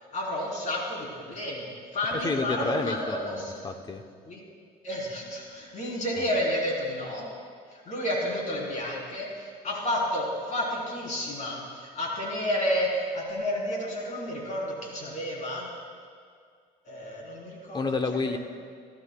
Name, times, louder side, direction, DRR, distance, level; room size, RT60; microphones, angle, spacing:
voice 1, 0.1-1.7 1.9-3.7 4.3-4.4 4.8-7.3 7.7-15.7 16.9-17.8 18.1-18.3, left 1 dB, 45° left, -3 dB, 3.6 m, -31 dB
voice 2, 2.1-4.0 17.7-18.4, left 3 dB, 25° left, 6 dB, 0.8 m, -30 dB
18.0 x 13.5 x 2.3 m, 2.1 s
cardioid pair, 110°, 17 cm